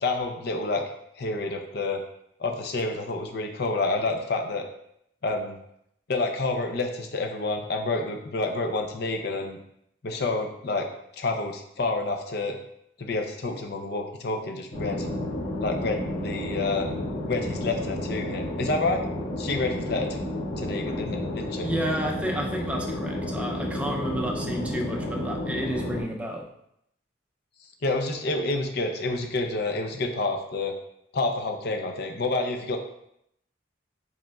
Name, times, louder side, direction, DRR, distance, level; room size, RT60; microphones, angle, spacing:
voice 1, 0.0-0.8 1.2-2.0 2.4-4.7 5.2-5.6 6.1-9.6 10.0-10.9 11.2-12.6 13.0-15.1 15.6-16.9 17.2-19.1 19.4-20.2 20.6-21.7 27.8-30.7 31.1-32.8, left 3 dB, 55° left, 4 dB, 0.6 m, -28 dB
sound 1, 14.7-26.0, left 1 dB, 30° left, 1.7 m, -31 dB
voice 2, 21.6-26.5, equal, 5° right, 1 dB, 0.5 m, -31 dB
5.0 x 4.2 x 2.3 m, 0.75 s
head